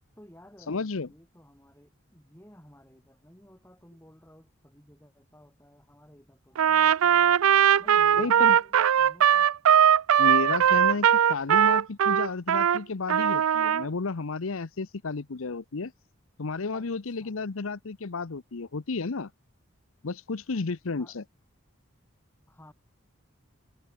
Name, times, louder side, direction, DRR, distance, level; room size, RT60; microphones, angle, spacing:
voice 1, 0.2-7.4 7.8-9.5 10.5-11.1 16.7-17.4 21.0-21.2 22.5-22.7, equal, 10° left, 5.1 m, -54 dB
voice 2, 0.7-1.1 8.2-8.6 10.2-15.9 16.4-19.3 20.0-21.2, left 4 dB, 80° left, 0.8 m, -32 dB
Trumpet, 6.6-12.8 13.1-13.9, right 9 dB, 90° right, 0.4 m, -20 dB
head